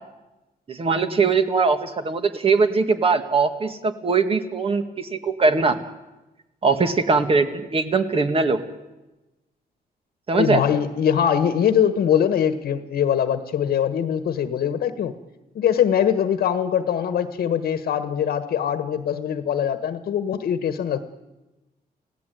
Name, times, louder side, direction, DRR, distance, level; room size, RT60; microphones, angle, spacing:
voice 1, 0.7-5.8 6.6-8.6 10.3-10.6, right 4 dB, 35° right, 8 dB, 2.2 m, -21 dB
voice 2, 10.4-15.1 15.5-21.0, left 8 dB, 80° left, 10 dB, 1.6 m, -22 dB
29.5 x 17.5 x 9.4 m, 1.1 s
cardioid pair, 130°, 16 cm